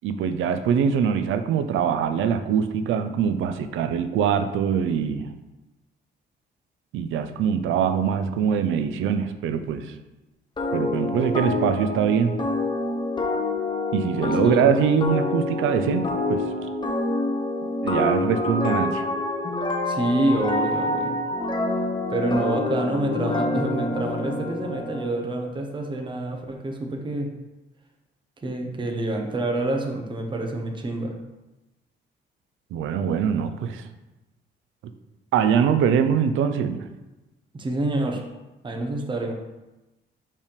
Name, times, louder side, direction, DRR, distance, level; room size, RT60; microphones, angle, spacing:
voice 1, 0.0-5.3 6.9-9.9 10.7-12.3 13.9-16.4 17.8-19.1 32.7-33.8 35.3-36.8, right 7 dB, 80° right, 9 dB, 0.5 m, -23 dB
sound 1, 10.6-25.2, left 2 dB, 25° left, 0.9 m, -27 dB
voice 2, 19.9-21.2 22.1-27.3 28.4-31.1 37.5-38.2 38.6-39.3, right 2 dB, 25° right, 2 dB, 0.8 m, -27 dB
5.4 x 3.4 x 5.1 m, 1.1 s
cardioid pair, 90°, 20 cm